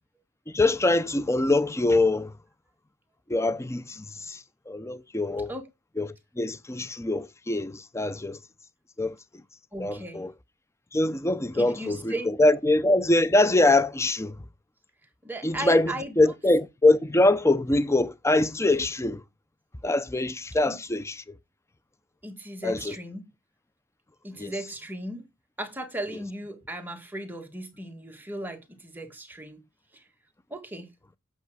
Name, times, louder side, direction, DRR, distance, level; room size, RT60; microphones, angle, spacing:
voice 1, 0.5-2.3 3.3-4.4 4.7-5.5 6.0-8.4 9.0-9.1 9.8-10.3 10.9-14.4 15.4-19.2 19.8-21.2 22.6-22.9 24.4-24.5, left 2 dB, 15° left, 0.6 m, -23 dB
voice 2, 9.7-10.2 11.5-12.3 15.2-16.1 20.7-20.8 22.2-23.3 24.2-25.3 25.6-29.6 30.5-30.9, right 1 dB, 10° right, 1.7 m, -36 dB
8.2 x 6.0 x 4.8 m
head